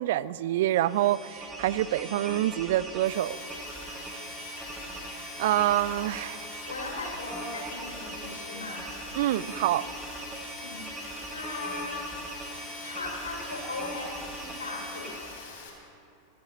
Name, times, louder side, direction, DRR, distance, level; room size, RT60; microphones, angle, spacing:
voice 1, 0.0-3.4 5.4-6.4 9.2-9.9, right 14 dB, 55° right, 19 dB, 0.3 m, -26 dB
sound 1, 0.7-15.5, right 2 dB, 15° right, 1.7 m, -40 dB
Rain, 3.1-15.7, left 5 dB, 50° left, 3.3 m, -46 dB
voice 2, 6.7-8.9 10.6-12.0 12.8-15.1, left 3 dB, 75° left, -2 dB, 3.8 m, -38 dB
28.0 x 12.0 x 2.9 m, 2.8 s
figure-of-eight pair, 90°, 0 cm